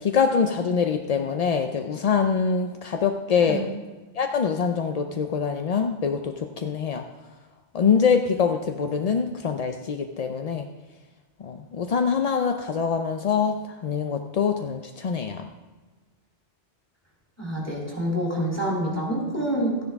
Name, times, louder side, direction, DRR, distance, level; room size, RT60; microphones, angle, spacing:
voice 1, 0.0-3.7 4.2-7.0 7.7-10.7 11.4-13.6 13.8-15.4, left 6 dB, 55° left, 5 dB, 0.4 m, -24 dB
voice 2, 17.4-19.8, right 1 dB, 15° left, -4 dB, 2.9 m, -26 dB
13.0 x 10.0 x 3.5 m, 1.3 s
omnidirectional pair, 1.2 m